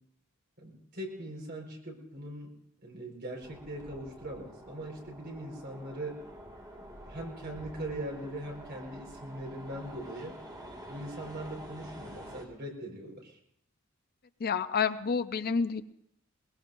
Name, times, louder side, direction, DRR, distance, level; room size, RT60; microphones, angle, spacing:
voice 1, 0.6-2.6 2.8-6.2 7.0-10.4 10.9-13.4, right 1 dB, 55° right, 0 dB, 4.6 m, -41 dB
sound 1, 3.4-12.4, right 1 dB, 20° right, 2.0 m, -48 dB
voice 2, 14.4-15.8, left 5 dB, 45° left, 12 dB, 0.5 m, -29 dB
22.0 x 20.5 x 2.6 m, 0.71 s
head